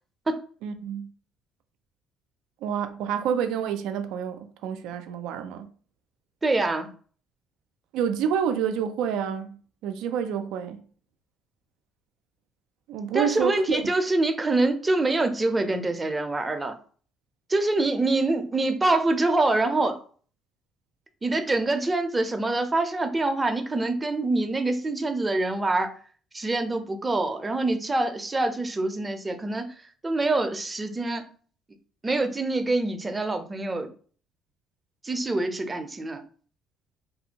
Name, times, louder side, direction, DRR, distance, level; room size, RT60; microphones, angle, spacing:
voice 1, 0.6-1.1 2.6-5.7 7.9-9.6 9.8-10.8 12.9-13.8, right 8 dB, 80° right, 0.3 m, -28 dB
voice 2, 6.4-6.9 13.1-16.7 17.5-20.0 21.2-25.9 26.3-29.7 30.0-31.2 32.0-33.9 35.0-36.2, right 2 dB, 20° right, 0.5 m, -25 dB
2.6 x 2.5 x 2.8 m
supercardioid pair, 75°, 0 cm